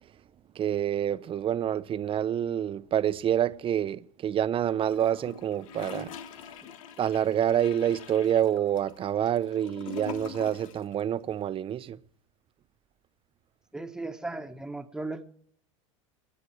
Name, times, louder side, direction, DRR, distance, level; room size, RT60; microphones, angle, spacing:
voice 1, 0.6-6.1 7.0-12.0, right 10 dB, 30° right, 0.9 m, -27 dB
Gurgling / Toilet flush, 4.8-10.9 11.2-11.3, left 8 dB, 75° left, 1.1 m, -44 dB
voice 2, 13.7-15.2, right 2 dB, 5° right, 1.5 m, -36 dB
28.0 x 9.7 x 4.7 m
hypercardioid pair, 100°, 18 cm